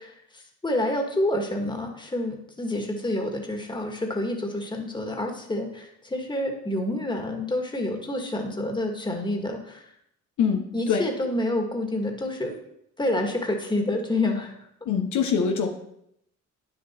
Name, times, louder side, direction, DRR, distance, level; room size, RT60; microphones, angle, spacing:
voice 1, 0.0-9.9 10.7-12.6 13.0-14.5, left 1 dB, 15° left, 2 dB, 1.9 m, -28 dB
voice 2, 10.4-11.0 14.9-15.7, left 6 dB, 75° left, 3 dB, 1.2 m, -24 dB
9.4 x 7.1 x 4.4 m, 0.76 s
cardioid pair, 90°, 30 cm